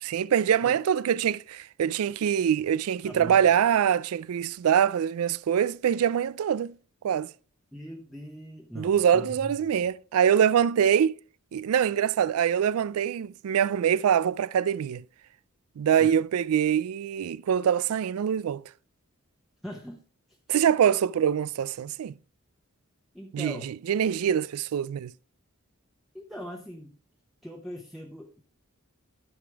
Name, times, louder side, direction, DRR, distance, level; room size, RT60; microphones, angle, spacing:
voice 1, 0.0-6.7 7.0-7.3 8.8-11.2 11.5-15.0 15.8-18.6 20.5-22.1 23.3-23.6 23.9-25.1, right 8 dB, 80° right, 0.3 m, -24 dB
voice 2, 3.0-3.5 7.7-9.9 15.9-16.2 19.6-20.0 20.3-20.4 23.1-23.7 26.1-26.9 27.4-28.4, equal, ahead, 0.8 m, -41 dB
13.0 x 5.1 x 3.4 m
head